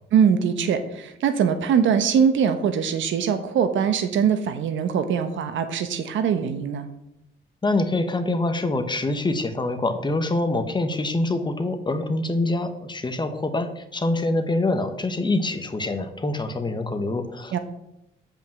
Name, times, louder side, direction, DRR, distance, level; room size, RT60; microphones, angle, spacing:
voice 1, 0.1-6.9 17.5-17.6, right 7 dB, 75° right, 9 dB, 1.1 m, -22 dB
voice 2, 7.6-17.6, left 2 dB, 20° left, 8 dB, 1.2 m, -25 dB
8.1 x 5.1 x 7.6 m, 0.84 s
cardioid pair, 90°, 20 cm